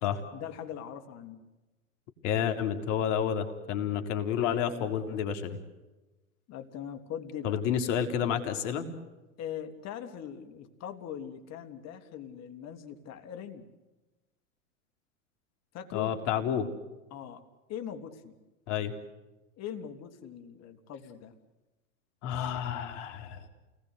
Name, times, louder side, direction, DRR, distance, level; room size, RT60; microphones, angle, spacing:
voice 1, 0.3-1.4 6.5-7.6 9.4-13.7 15.7-16.1 17.1-17.4 17.7-18.3 19.6-21.3, left 9 dB, 40° left, 7 dB, 3.1 m, -41 dB
voice 2, 2.2-5.6 7.4-8.9 15.9-16.7 18.7-19.0 22.2-23.4, left 8 dB, 60° left, 7 dB, 3.8 m, -30 dB
29.0 x 20.0 x 8.1 m, 1.1 s
hypercardioid pair, 105°, 42 cm